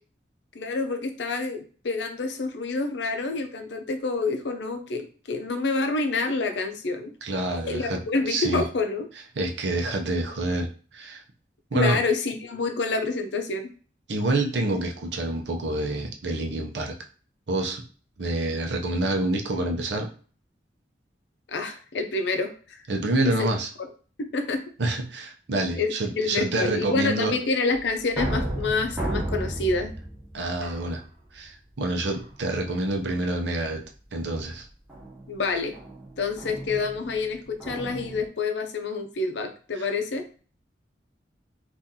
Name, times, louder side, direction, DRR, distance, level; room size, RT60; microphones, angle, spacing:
voice 1, 0.5-7.1 7.7-9.1 11.7-13.7 21.5-22.8 23.2-23.3 24.2-24.6 25.7-29.9 35.3-35.7 36.2-40.2, left 3 dB, 80° left, 6 dB, 0.6 m, -28 dB
voice 2, 7.2-8.6 9.4-11.2 11.7-12.0 14.1-16.9 17.5-17.8 18.2-20.1 22.9-23.7 24.8-27.4 30.3-31.0 31.3-33.8 34.1-34.7 39.8-39.9, right 2 dB, 75° right, 3 dB, 0.7 m, -27 dB
sound 1, 27.7-31.5 32.0-32.6 33.0-33.4 34.9-38.3, right 1 dB, 10° right, 0.8 m, -34 dB
2.8 x 2.5 x 3.6 m, 0.40 s
head